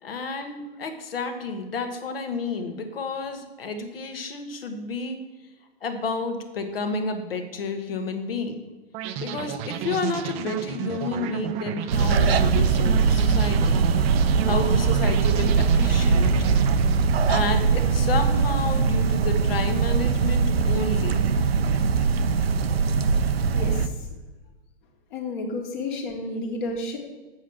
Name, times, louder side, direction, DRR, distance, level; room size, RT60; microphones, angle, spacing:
voice 1, 0.0-5.2 5.8-8.6 9.2-13.9 14.1-16.6 17.3-21.2, left 3 dB, 70° left, 6 dB, 1.4 m, -31 dB
sound 1, 8.9-18.0, right 10 dB, 20° right, 0.4 m, -32 dB
sound 2, 11.9-23.9, right 5 dB, 75° right, 0.7 m, -21 dB
voice 2, 23.5-23.9 25.1-27.0, left 2 dB, 50° left, 2 dB, 1.8 m, -31 dB
8.1 x 4.8 x 7.3 m, 1.2 s
figure-of-eight pair, 115°, 31 cm